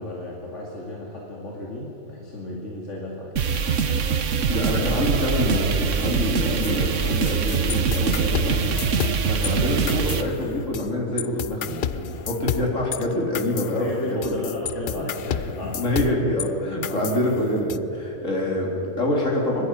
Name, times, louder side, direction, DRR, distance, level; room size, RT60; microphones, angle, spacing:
voice 1, 0.0-3.3 13.7-15.9 16.8-17.1, left 2 dB, 70° left, -3 dB, 2.9 m, -33 dB
sound 1, 3.4-10.2, right 6 dB, 75° right, 1.4 m, -23 dB
voice 2, 4.5-8.7 9.3-14.5 14.9-15.4 15.7-19.7, left 1 dB, 90° left, -2 dB, 4.0 m, -26 dB
sound 2, 6.6-9.5 9.9-10.9 11.2-16.5 16.8-17.8, left 9 dB, 55° left, 0.6 m, -31 dB
24.0 x 11.5 x 10.0 m, 2.9 s
omnidirectional pair, 1.3 m